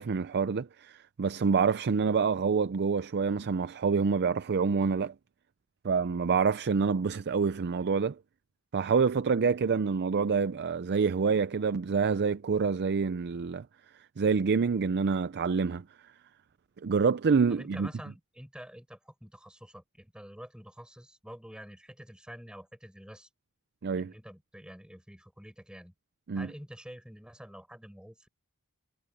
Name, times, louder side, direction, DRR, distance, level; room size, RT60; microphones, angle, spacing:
voice 1, 0.0-5.1 5.8-8.2 8.7-13.7 14.2-15.8 16.8-17.9 23.8-24.1 26.3-26.5, right 5 dB, 50° right, 0.5 m, -27 dB
voice 2, 17.5-23.3 24.0-25.9 26.3-28.3, equal, 5° right, 7.6 m, -48 dB
head